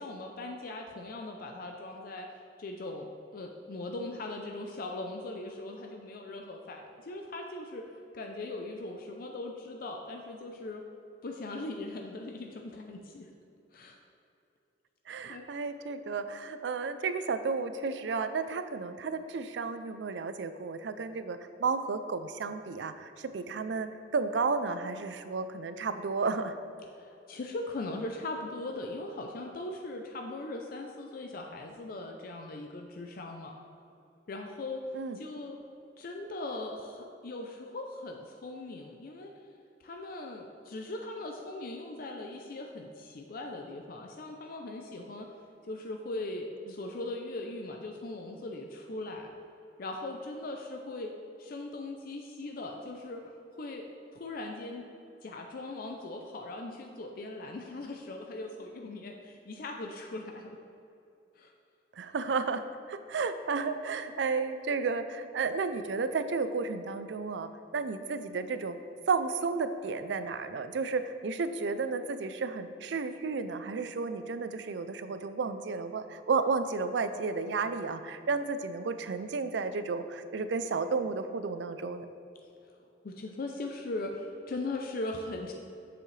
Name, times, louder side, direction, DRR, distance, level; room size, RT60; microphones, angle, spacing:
voice 1, 0.0-2.3 2.6-7.8 8.1-10.8 11.2-13.3 13.7-14.0 15.2-15.4 26.9-33.6 34.3-35.6 36.0-39.3 39.8-45.3 45.6-49.4 49.8-51.1 51.4-53.8 54.1-54.9 55.2-60.6 61.4-61.5 83.0-85.5, left 2 dB, 55° left, 3 dB, 0.5 m, -39 dB
voice 2, 15.1-23.9 24.1-26.6 34.9-35.2 62.0-62.6 62.9-68.8 69.1-82.1, right 4 dB, 75° right, 10 dB, 0.4 m, -32 dB
7.4 x 7.0 x 3.2 m, 2.7 s
head